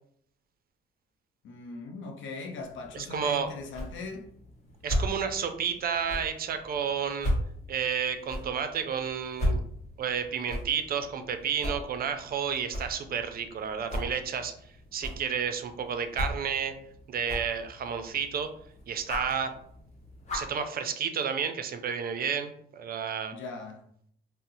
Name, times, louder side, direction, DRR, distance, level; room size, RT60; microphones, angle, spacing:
voice 1, 1.4-4.3 23.3-23.8, left 3 dB, 75° left, 0.6 m, -40 dB
sound 1, 2.6-20.6, equal, 35° left, 1.2 m, -37 dB
voice 2, 2.9-3.5 4.8-7.3 7.7-9.6 10.0-14.5 14.9-16.7 17.1-18.5 18.9-19.5 20.3-23.4, right 7 dB, 50° right, 0.4 m, -31 dB
2.7 x 2.0 x 3.9 m
cardioid pair, 90°, 20 cm